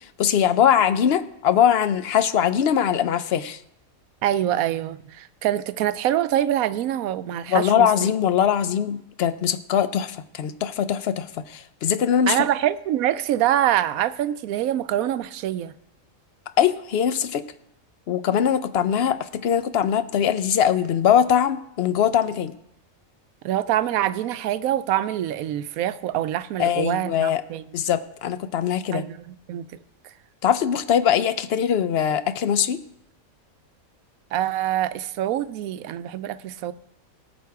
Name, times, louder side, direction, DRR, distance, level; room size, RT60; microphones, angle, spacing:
voice 1, 0.2-3.6 7.5-12.4 16.6-17.4 18.1-22.5 26.6-27.4 27.7-29.0 30.4-32.8, left 9 dB, 60° left, 12 dB, 0.7 m, -21 dB
voice 2, 4.2-8.1 12.3-15.7 23.4-27.6 28.9-29.6 34.3-36.7, right 12 dB, 90° right, 14 dB, 1.0 m, -25 dB
18.0 x 6.4 x 4.7 m, 0.78 s
omnidirectional pair, 1.4 m